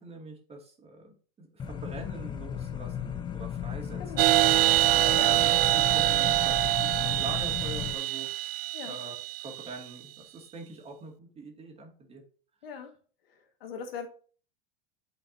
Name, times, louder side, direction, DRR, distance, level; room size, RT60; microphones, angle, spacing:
voice 1, 0.0-4.4 4.7-8.3 8.6-12.2, right 2 dB, 20° right, 1 dB, 2.2 m, -44 dB
sound 1, 1.6-7.9, left 9 dB, 15° left, 0.5 m, -36 dB
voice 2, 4.0-4.5 5.1-5.4 8.7-9.0 12.6-12.9 13.3-14.1, left 6 dB, 80° left, 5 dB, 1.7 m, -40 dB
sound 2, 4.2-9.7, right 16 dB, 75° right, 0.6 m, -25 dB
9.1 x 5.2 x 2.7 m, 0.41 s
supercardioid pair, 120°, 29 cm